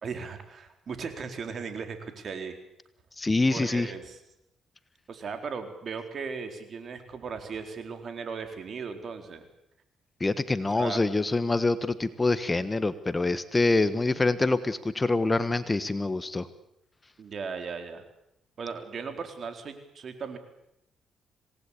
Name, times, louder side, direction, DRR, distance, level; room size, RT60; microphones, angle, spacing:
voice 1, 0.0-2.5 3.5-4.2 5.1-9.5 10.7-11.0 17.2-18.0 18.6-20.4, right 5 dB, 50° right, 7 dB, 4.2 m, -37 dB
voice 2, 3.2-3.9 10.2-16.5, left 2 dB, 20° left, 13 dB, 1.3 m, -25 dB
26.5 x 19.0 x 8.5 m, 0.80 s
cardioid pair, 90°, 0 cm